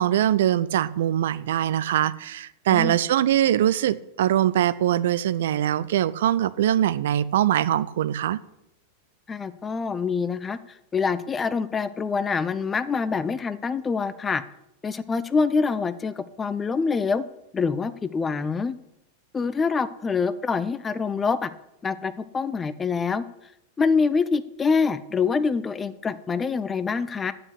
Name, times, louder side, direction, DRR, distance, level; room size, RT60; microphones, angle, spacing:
voice 1, 0.0-8.4, right 11 dB, 60° right, 0.5 m, -22 dB
voice 2, 9.3-10.6 10.9-14.4 14.8-17.2 17.5-18.7 19.3-21.5 21.8-23.2 23.8-27.3, left 5 dB, 15° left, 0.5 m, -25 dB
8.5 x 6.9 x 8.2 m
figure-of-eight pair, 90°, 0 cm